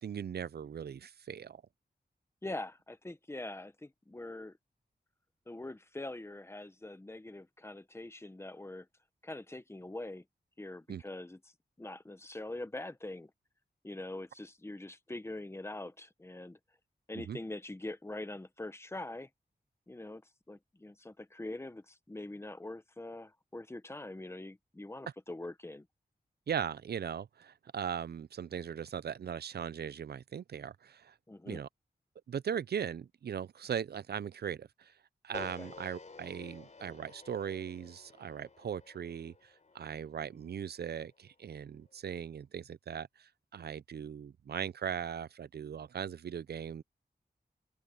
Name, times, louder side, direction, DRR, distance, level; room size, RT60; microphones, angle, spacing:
voice 1, 0.0-1.6 10.9-11.0 17.1-17.4 26.5-31.1 31.5-31.7 32.3-34.9 35.2-46.8, right 8 dB, 75° right, 0.5 m, -39 dB
voice 2, 2.4-4.6 5.5-8.9 9.2-10.2 10.6-11.4 11.8-13.3 13.8-16.6 17.1-19.3 19.9-20.2 20.5-25.9 31.3-31.6 35.6-35.7, left 2 dB, 15° left, 1.1 m, -43 dB
sound 1, 35.3-41.5, left 3 dB, 45° left, 4.1 m, -52 dB
open air
wide cardioid pair, 115°, 17 cm